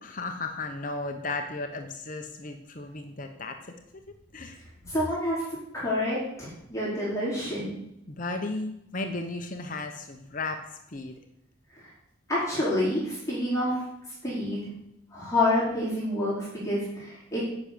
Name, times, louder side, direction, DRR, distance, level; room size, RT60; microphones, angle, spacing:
voice 1, 0.0-3.7 4.3-4.6 8.1-10.6 10.9-11.1, left 3 dB, 40° left, 5 dB, 1.0 m, -35 dB
voice 2, 4.9-5.4 5.7-7.8 11.8-11.9 12.3-13.8 14.2-14.7 15.1-17.4, left 1 dB, 15° left, -9 dB, 4.5 m, -28 dB
11.0 x 6.3 x 8.5 m, 0.82 s
head